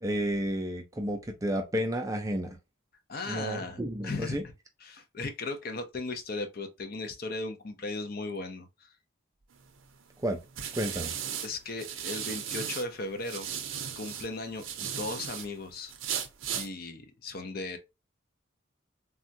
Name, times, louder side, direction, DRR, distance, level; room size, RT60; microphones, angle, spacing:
voice 1, 0.0-2.6 3.3-4.4 10.2-10.4 10.8-11.1, equal, 15° right, 0.4 m, -31 dB
voice 2, 3.1-4.4 4.8-8.9 11.4-13.5 14.0-15.9 16.5-17.8, left 3 dB, 45° left, 0.5 m, -37 dB
sound 1, 9.6-12.9 13.2-15.5 15.9-16.7, right 8 dB, 80° right, 0.6 m, -36 dB
3.4 x 2.2 x 2.6 m
head